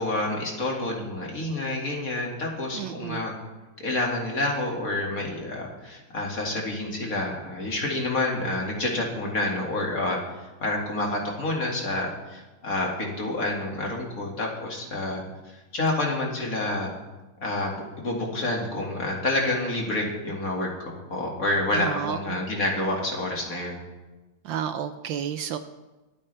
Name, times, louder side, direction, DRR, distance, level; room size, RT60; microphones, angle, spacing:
voice 1, 0.0-3.4 3.8-10.2 10.6-15.2 15.7-16.9 17.4-23.8, left 2 dB, 45° left, -1 dB, 2.5 m, -28 dB
voice 2, 2.7-3.2 21.7-22.4 24.4-25.6, right 9 dB, 75° right, 10 dB, 1.3 m, -31 dB
25.0 x 8.7 x 3.3 m, 1.1 s
omnidirectional pair, 2.3 m